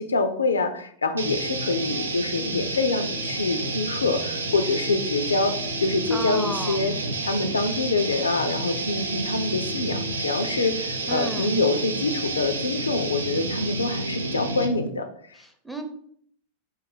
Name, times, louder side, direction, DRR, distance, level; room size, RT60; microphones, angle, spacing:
voice 1, 0.0-6.9 7.2-15.1, left 3 dB, 75° left, 8 dB, 0.4 m, -25 dB
sound 1, 1.2-14.9, right 2 dB, 75° right, 0.5 m, -30 dB
voice 2, 6.1-6.8 11.1-11.5 15.4-15.8, right 1 dB, ahead, 5 dB, 0.6 m, -32 dB
4.5 x 2.6 x 4.0 m, 0.63 s
figure-of-eight pair, 90°, 0 cm